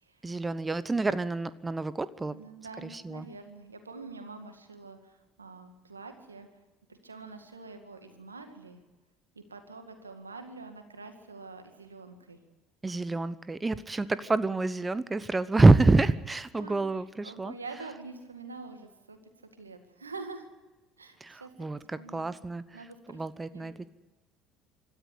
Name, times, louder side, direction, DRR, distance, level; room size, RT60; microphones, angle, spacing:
voice 1, 0.2-2.4 2.8-3.3 12.8-17.5 21.2-22.6 23.1-23.9, right 3 dB, 20° right, 16 dB, 0.9 m, -27 dB
voice 2, 2.3-6.5 6.9-8.8 9.3-12.4 15.5-15.7 16.5-16.8 17.2-19.2 19.6-20.5 21.0-21.5 22.0-22.4 22.7-23.2 23.5-23.7, right 3 dB, 90° right, 7 dB, 2.1 m, -45 dB
26.0 x 13.5 x 8.2 m, 1.1 s
figure-of-eight pair, 60°, 0 cm